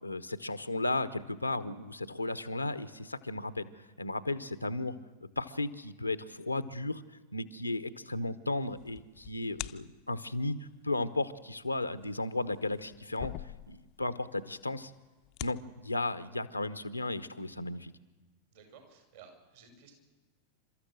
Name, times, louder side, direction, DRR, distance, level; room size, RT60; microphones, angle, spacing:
voice 1, 0.0-3.7 4.0-5.0 5.4-7.0 7.3-10.6 10.8-13.3 13.7-14.9 15.4-17.9, left 2 dB, 85° left, 14 dB, 0.9 m, -34 dB
sound 1, 8.6-10.2 11.6-14.1 14.4-14.5 15.1-15.6, left 17 dB, 40° left, 0.6 m, -43 dB
voice 2, 18.5-19.9, right 6 dB, 60° right, 4 dB, 5.7 m, -55 dB
29.5 x 13.5 x 7.7 m, 1.2 s
figure-of-eight pair, 90°, 0 cm